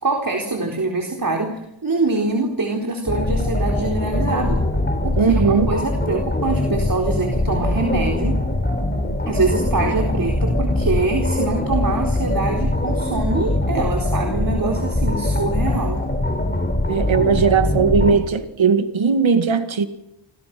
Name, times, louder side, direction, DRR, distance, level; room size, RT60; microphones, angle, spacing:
voice 1, 0.0-4.7 5.0-8.4 9.3-16.0, right 3 dB, 45° right, 4.1 m, -24 dB
sound 1, 3.1-18.1, left 1 dB, 20° left, 5.3 m, -22 dB
voice 2, 5.2-5.7 16.9-19.9, right 5 dB, 85° right, 2.2 m, -18 dB
29.0 x 26.0 x 6.1 m
wide cardioid pair, 65°, 45 cm